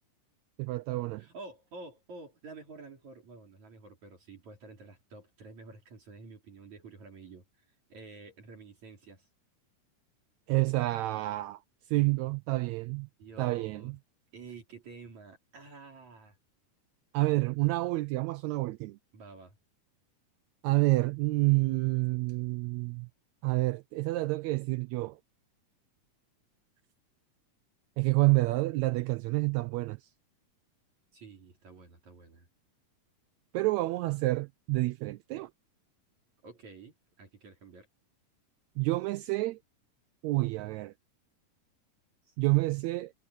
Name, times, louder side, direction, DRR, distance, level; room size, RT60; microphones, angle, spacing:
voice 1, 0.6-1.2 10.5-11.6 11.9-13.1 13.4-14.0 17.1-19.0 20.6-23.1 23.4-25.2 28.0-30.0 33.5-35.5 38.8-39.6 40.2-40.9 42.4-43.1, right 21 dB, 85° right, 1.6 m, -28 dB
voice 2, 1.2-7.4 7.9-9.3 13.2-14.0 14.3-16.4 19.1-19.6 31.1-32.5 36.4-37.9 42.2-42.4, right 3 dB, 60° right, 5.3 m, -49 dB
omnidirectional pair, 3.7 m